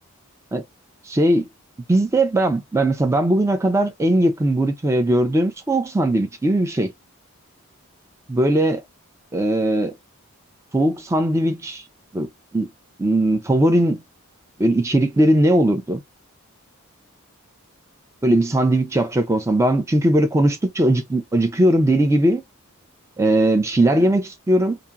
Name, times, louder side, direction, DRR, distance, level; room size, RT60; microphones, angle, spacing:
voice 1, 1.1-1.5 1.9-6.9 8.3-8.8 9.3-9.9 10.7-11.8 12.1-12.3 12.5-12.7 13.0-14.0 14.6-16.0 18.2-22.4 23.2-24.8, right 1 dB, 15° right, 0.3 m, -19 dB
2.8 x 2.5 x 2.4 m
head